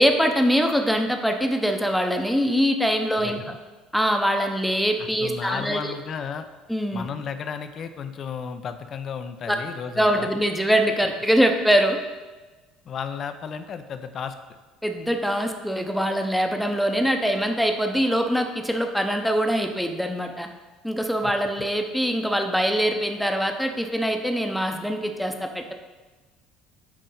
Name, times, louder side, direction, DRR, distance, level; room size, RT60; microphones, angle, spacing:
voice 1, 0.0-3.4 3.9-5.9 6.7-7.1 9.5-9.6 10.0-12.0 14.8-20.5 20.8-25.7, equal, ahead, 4 dB, 0.8 m, -23 dB
voice 2, 3.1-3.6 5.0-6.5 6.9-10.3 12.8-14.4 21.2-21.3, left 6 dB, 45° left, 9 dB, 0.5 m, -33 dB
9.1 x 3.7 x 4.0 m, 1.2 s
figure-of-eight pair, 60°, 0 cm